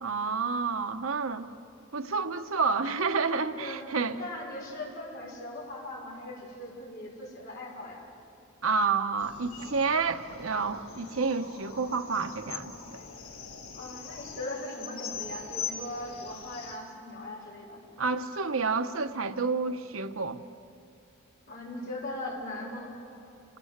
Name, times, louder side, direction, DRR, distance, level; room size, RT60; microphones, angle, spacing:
voice 1, 0.0-1.5 1.9-4.2 8.6-13.0 18.0-20.4, right 4 dB, 85° right, 8 dB, 1.1 m, -29 dB
voice 2, 3.5-8.0 13.7-17.8 21.5-22.9, left 1 dB, 50° left, -5 dB, 6.1 m, -39 dB
sound 1, 9.2-16.8, left 6 dB, 85° left, 2.3 m, -42 dB
28.5 x 17.0 x 8.1 m, 2.9 s
head